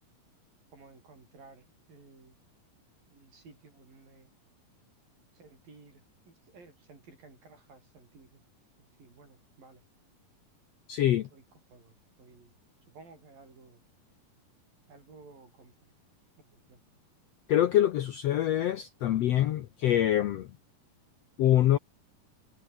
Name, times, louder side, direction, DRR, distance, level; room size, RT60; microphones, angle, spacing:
voice 1, 0.7-2.4 3.1-4.3 5.3-8.4 8.8-9.8 11.0-11.4 11.7-12.5 12.9-13.8 14.9-15.9 16.5-16.8, right 3 dB, 70° right, 9.9 m, -55 dB
voice 2, 10.9-11.3 17.5-20.5 21.4-21.8, left 12 dB, 85° left, 1.4 m, -25 dB
omnidirectional pair, 4.2 m